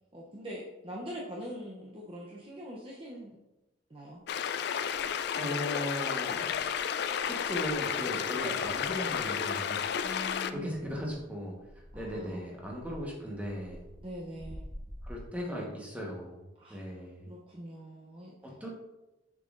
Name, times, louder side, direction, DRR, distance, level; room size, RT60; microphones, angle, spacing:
voice 1, 0.1-3.4 3.9-4.2 10.0-10.9 11.9-12.5 14.0-14.7 16.6-16.8 17.3-18.5, equal, 30° right, -4 dB, 0.7 m, -43 dB
sound 1, 4.3-10.5, left 8 dB, 55° left, 0.3 m, -32 dB
sound 2, 4.9-5.5 6.0-15.2, equal, 85° right, 2.2 m, -50 dB
voice 2, 5.3-6.5 7.3-9.9 10.5-11.6 11.9-13.8 15.0-16.4 16.7-17.3 18.4-18.7, equal, 10° right, -2 dB, 1.2 m, -37 dB
6.6 x 6.2 x 2.6 m, 1.0 s
head